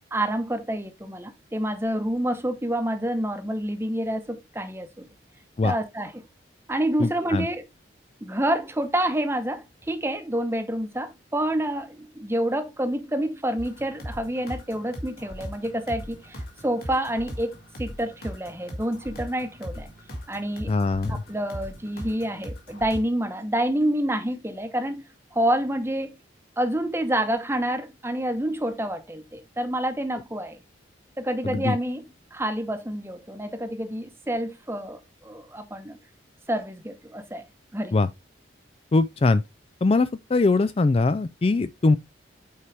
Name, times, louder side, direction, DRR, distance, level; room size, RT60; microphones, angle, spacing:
voice 1, 0.1-5.1 5.6-6.2 6.7-7.6 8.2-19.9 20.3-20.7 21.1-25.0 25.3-26.1 26.6-30.6 31.2-32.0 32.3-36.0 36.5-37.5 37.7-38.0, right 1 dB, 15° right, 0.9 m, -28 dB
voice 2, 7.0-7.5 20.7-21.2 31.4-31.8 37.9-38.1 38.9-39.4 39.8-42.0, left 3 dB, 30° left, 0.3 m, -22 dB
sound 1, 13.6-23.0, equal, 50° left, 2.3 m, -39 dB
8.5 x 4.7 x 3.3 m
head